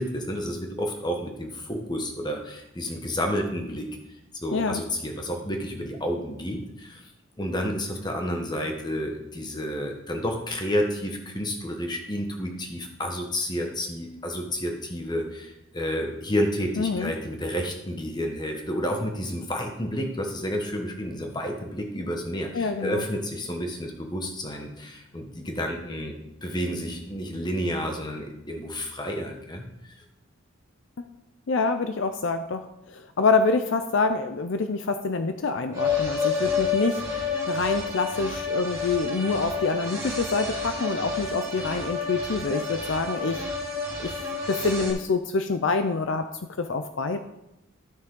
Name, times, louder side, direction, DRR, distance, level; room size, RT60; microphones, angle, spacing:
voice 1, 0.0-3.9 4.4-7.0 7.4-26.1 26.4-29.6, equal, 20° left, 3 dB, 1.2 m, -30 dB
voice 2, 4.5-4.8 16.8-17.1 22.5-23.1 31.5-37.0 37.5-43.4 44.0-46.3 46.6-47.2, left 4 dB, 60° left, 8 dB, 0.5 m, -26 dB
sound 1, 35.7-44.9, left 4 dB, 15° right, 1.8 m, -29 dB
12.5 x 5.9 x 3.8 m, 0.90 s
head